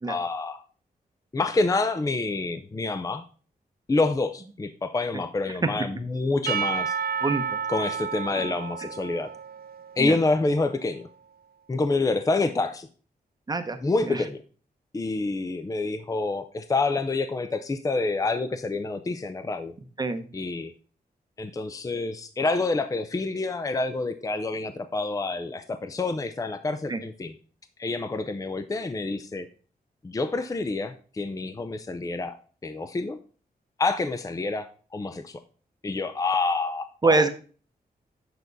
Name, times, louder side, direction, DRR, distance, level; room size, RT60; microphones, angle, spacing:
voice 1, 0.0-0.6 1.3-3.2 3.9-7.0 7.7-9.3 10.0-11.1 11.7-12.9 13.8-14.4 14.9-19.7 20.3-20.7 21.4-27.3 27.8-29.5 30.0-32.3 32.6-33.2 33.8-35.4 35.8-37.3, left 3 dB, 20° left, 10 dB, 0.5 m, -27 dB
Percussion / Church bell, 6.5-10.8, right 7 dB, 70° right, 0.6 m, -31 dB
voice 2, 7.2-7.9 8.3-8.5 10.0-10.2 13.5-14.2 20.0-20.3 26.9-27.0 37.0-37.3, right 3 dB, 25° right, 8 dB, 0.8 m, -26 dB
9.2 x 6.1 x 4.0 m, 0.40 s
wide cardioid pair, 135°, 16 cm